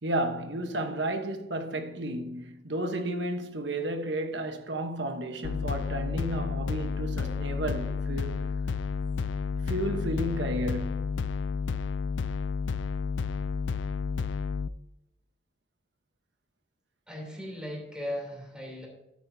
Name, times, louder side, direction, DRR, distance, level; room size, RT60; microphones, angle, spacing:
voice 1, 0.0-8.4 9.6-11.1, right 1 dB, 75° right, 1.2 m, -32 dB
sound 1, 5.4-14.7, left 5 dB, 85° left, 0.4 m, -31 dB
voice 2, 17.1-18.9, left 1 dB, 5° right, 3.2 m, -37 dB
13.0 x 9.6 x 2.8 m
head